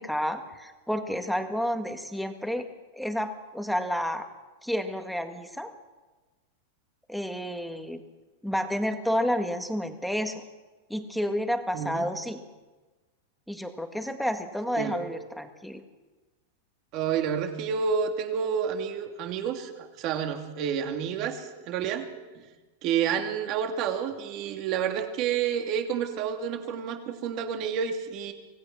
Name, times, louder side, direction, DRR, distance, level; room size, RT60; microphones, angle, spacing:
voice 1, 0.0-2.7 3.0-4.2 4.6-5.7 7.1-8.0 8.4-10.4 10.9-12.4 13.5-15.8, equal, ahead, 6 dB, 1.7 m, -30 dB
voice 2, 11.7-12.1 14.8-15.0 16.9-22.1 22.8-28.3, right 7 dB, 40° right, 5 dB, 2.6 m, -29 dB
25.0 x 17.5 x 6.1 m, 1.2 s
supercardioid pair, 150°, 0 cm